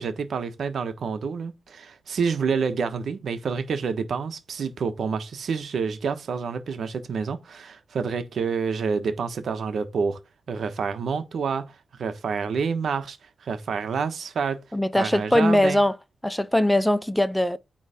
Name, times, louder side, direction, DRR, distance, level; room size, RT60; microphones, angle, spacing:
voice 1, 0.0-10.2 10.5-14.6 14.9-15.8, right 5 dB, 70° right, 1.1 m, -28 dB
voice 2, 14.7-15.9 16.2-17.6, left 1 dB, 5° left, 0.5 m, -21 dB
8.8 x 3.3 x 5.0 m
wide cardioid pair, 120°, 0 cm